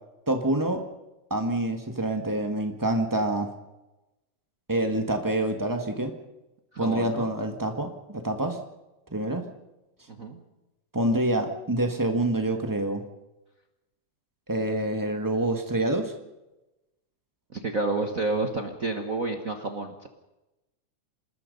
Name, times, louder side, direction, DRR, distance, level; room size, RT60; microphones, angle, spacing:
voice 1, 0.3-0.8 1.3-3.5 4.7-6.1 6.8-8.6 9.1-9.5 10.9-13.0 14.5-16.1, right 1 dB, 20° right, 5 dB, 0.5 m, -26 dB
voice 2, 6.7-7.3 10.1-10.4 17.5-20.1, right 2 dB, 50° right, 4 dB, 1.0 m, -30 dB
26.5 x 20.5 x 5.4 m, 1.0 s
omnidirectional pair, 3.6 m